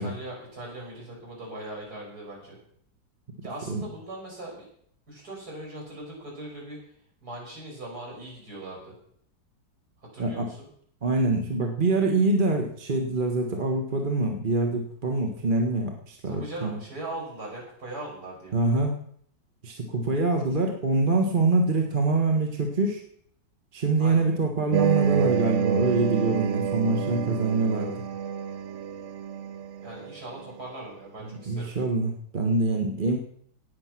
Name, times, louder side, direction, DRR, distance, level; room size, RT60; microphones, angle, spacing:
voice 1, 0.0-2.6 3.4-4.7 5.1-6.8 7.2-9.0 10.1-10.7 16.3-18.8 24.0-24.3 29.8-31.7, right 1 dB, 50° right, -3 dB, 6.3 m, -40 dB
voice 2, 11.0-16.8 18.5-18.9 19.6-23.0 23.7-28.0 31.5-33.2, right 3 dB, 30° right, 2 dB, 1.5 m, -25 dB
sound 1, 24.7-30.2, right 8 dB, 80° right, 0.6 m, -28 dB
18.5 x 7.3 x 6.0 m, 0.64 s
omnidirectional pair, 2.0 m